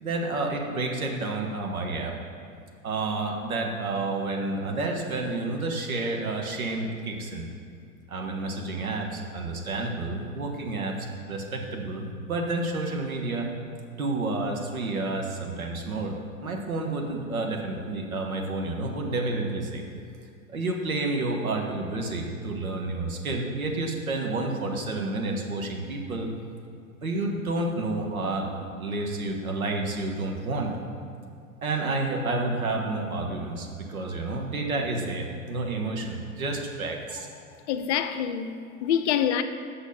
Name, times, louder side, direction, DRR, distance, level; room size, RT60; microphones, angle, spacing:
voice 1, 0.0-2.1 2.8-7.5 8.1-10.9 11.3-13.5 14.0-16.1 16.4-19.8 20.5-26.3 27.0-30.7 31.6-37.3, right 2 dB, 75° right, 1.5 m, -30 dB
voice 2, 37.7-39.4, left 9 dB, 55° left, 0.7 m, -26 dB
8.3 x 6.1 x 5.5 m
figure-of-eight pair, 95°, 43 cm